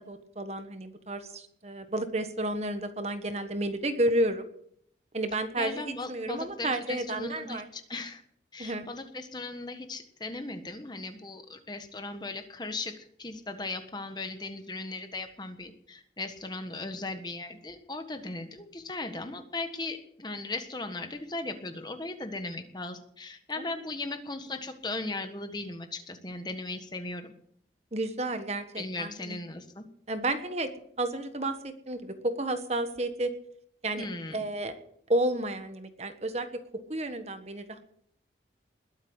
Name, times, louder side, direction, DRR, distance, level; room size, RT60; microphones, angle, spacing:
voice 1, 0.1-4.5 5.1-7.7 8.6-8.9 27.9-29.4 30.1-33.3 33.8-34.1 34.3-34.7 35.1-36.6 36.9-37.8, right 1 dB, 35° right, 8 dB, 1.4 m, -31 dB
voice 2, 5.6-8.2 8.5-27.3 28.8-29.9 34.0-34.5, left 2 dB, 25° left, 7 dB, 1.4 m, -37 dB
21.0 x 8.3 x 8.0 m, 0.69 s
head